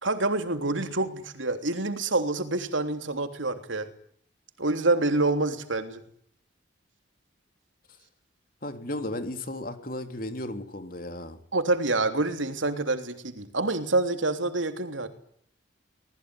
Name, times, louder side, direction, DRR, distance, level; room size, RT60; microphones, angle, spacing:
voice 1, 0.0-3.9 4.6-6.0 11.5-15.1, right 2 dB, 85° right, 7 dB, 3.2 m, -27 dB
voice 2, 8.6-11.4, left 1 dB, 45° left, 7 dB, 3.3 m, -35 dB
25.0 x 20.0 x 9.8 m, 0.64 s
head